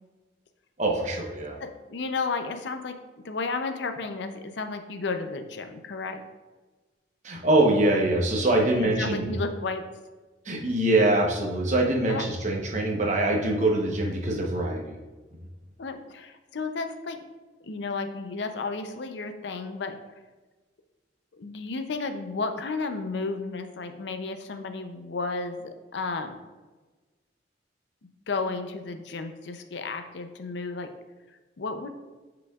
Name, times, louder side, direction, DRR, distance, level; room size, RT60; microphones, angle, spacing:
voice 1, 0.8-1.6 7.2-9.3 10.4-15.0, right 2 dB, 40° right, 0 dB, 0.9 m, -24 dB
voice 2, 1.6-3.0 3.2-6.2 8.8-9.8 12.1-12.2 15.8-17.2 17.6-20.0 21.3-26.4 28.3-30.9 31.6-31.9, left 4 dB, 75° left, 7 dB, 0.5 m, -33 dB
8.3 x 4.9 x 2.4 m, 1.2 s
head